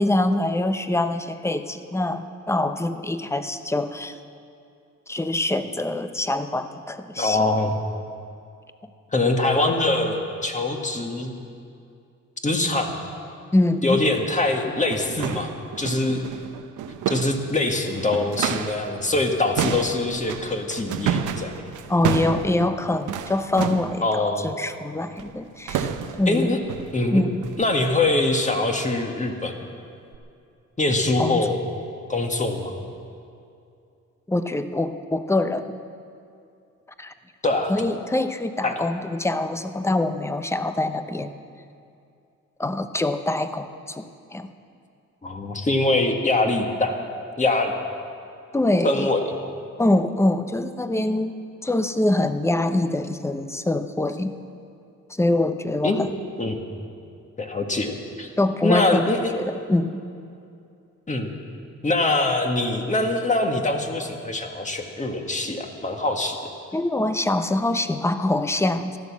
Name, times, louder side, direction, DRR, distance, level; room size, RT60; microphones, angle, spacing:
voice 1, 0.0-4.2 5.1-7.4 13.5-14.0 14.9-15.1 21.9-25.9 26.2-26.6 27.1-27.4 31.2-31.5 34.3-35.8 37.0-37.1 37.7-41.4 42.6-44.5 48.5-49.1 49.8-51.3 51.6-54.4 55.1-56.1 58.4-59.0 59.4-60.0 66.7-69.0, left 2 dB, 10° left, 10 dB, 0.8 m, -24 dB
voice 2, 7.2-7.7 9.1-11.3 12.4-13.0 13.8-15.5 15.8-16.2 17.1-21.6 24.0-24.5 26.3-26.6 26.9-27.3 27.6-29.6 30.8-31.6 32.1-32.7 37.4-37.7 38.6-38.7 45.2-46.9 47.4-47.7 48.8-49.2 55.8-56.0 56.4-56.6 57.4-58.3 58.6-59.3 61.1-61.3 61.8-66.4, left 2 dB, 25° left, 3 dB, 1.8 m, -23 dB
sound 1, 14.1-14.2 14.7-18.9 19.2-24.0 25.2-25.4 25.7-26.3 26.7-27.0 27.4-27.7 28.0-28.2 28.7-28.9 29.4-29.5 30.1-30.2, right 8 dB, 85° right, 0.9 m, -30 dB
15.0 x 11.5 x 7.3 m, 2.5 s
cardioid pair, 90°, 30 cm